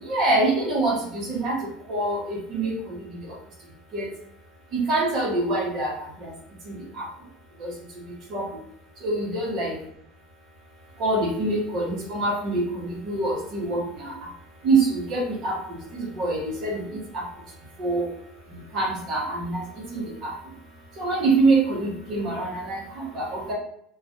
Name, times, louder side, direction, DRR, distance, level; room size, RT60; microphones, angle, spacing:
voice 1, 0.0-1.6 1.9-3.2 3.9-4.1 4.7-6.3 6.7-7.1 7.6-7.7 8.3-8.4 9.0-9.8 11.0-14.3 14.6-16.8 17.1-17.2 17.8-18.1 18.5-19.6 19.9-20.3 21.0-23.5, right 2 dB, 35° right, -3 dB, 1.0 m, -25 dB
3.1 x 2.4 x 2.7 m, 0.71 s
cardioid pair, 175°, 0 cm